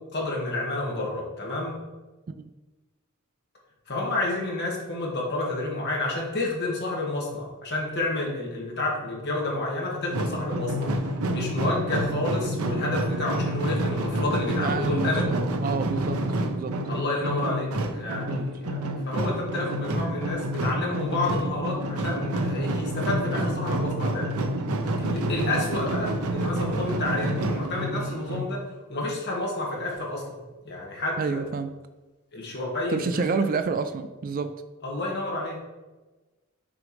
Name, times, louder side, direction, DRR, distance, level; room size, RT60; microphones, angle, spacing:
voice 1, 0.0-1.8 3.9-15.2 16.9-24.4 25.0-28.6 28.9-30.2 30.6-31.4 32.3-33.5 34.8-35.6, left 2 dB, 50° left, -2 dB, 1.7 m, -30 dB
sound 1, 10.1-28.4, right 1 dB, 85° right, 0.6 m, -28 dB
voice 2, 14.5-16.2 16.5-16.8 18.2-18.4 25.4-25.6 31.2-31.7 32.9-34.5, right 5 dB, 40° right, 10 dB, 0.3 m, -29 dB
6.3 x 5.1 x 3.2 m, 1.2 s
head